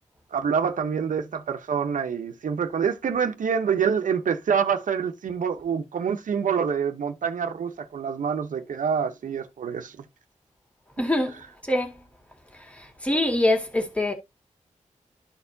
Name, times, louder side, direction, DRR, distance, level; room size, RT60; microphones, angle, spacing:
voice 1, 0.3-9.9, right 7 dB, 85° right, 0.8 m, -26 dB
voice 2, 11.0-11.4 11.7-11.9 12.8-14.1, left 1 dB, 10° left, 2.0 m, -24 dB
13.0 x 4.4 x 2.7 m
wide cardioid pair, 145°, 13 cm